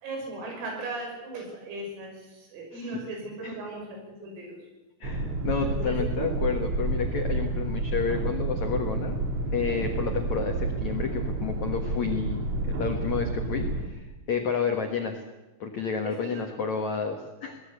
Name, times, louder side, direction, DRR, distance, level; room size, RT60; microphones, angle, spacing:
voice 1, 0.0-4.6 5.7-6.0 8.1-8.2 16.0-16.4, right 2 dB, 85° right, 1 dB, 8.7 m, -37 dB
voice 2, 2.7-3.1 3.4-3.6 5.0-9.2 9.5-15.2 15.6-17.6, left 5 dB, 75° left, 4 dB, 1.7 m, -30 dB
sound 1, 5.0-13.9, right 2 dB, 50° right, 1.9 m, -30 dB
23.0 x 18.5 x 8.2 m, 1.1 s
omnidirectional pair, 5.9 m